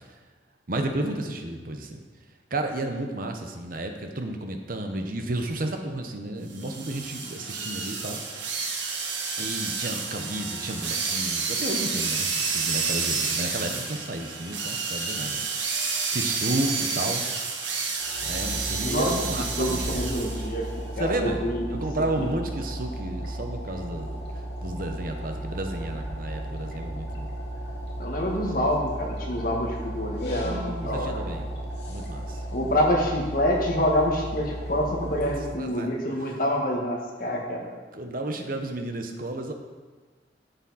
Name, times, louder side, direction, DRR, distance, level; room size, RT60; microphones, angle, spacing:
voice 1, 0.7-2.0 2.5-8.6 9.4-15.4 16.1-17.2 18.2-19.8 21.0-24.2 24.6-27.3 28.3-28.6 30.4-31.5 31.9-32.4 35.6-36.4 37.9-39.5, right 1 dB, 50° right, 4 dB, 1.0 m, -32 dB
sound 1, 6.5-20.5, right 5 dB, 90° right, 1.5 m, -30 dB
sound 2, 18.0-35.5, right 1 dB, 70° left, 2.1 m, -35 dB
voice 2, 19.6-20.7 21.0-21.6 28.0-31.2 32.5-37.7, equal, 50° left, -1 dB, 1.7 m, -26 dB
11.0 x 7.1 x 4.2 m, 1.4 s
head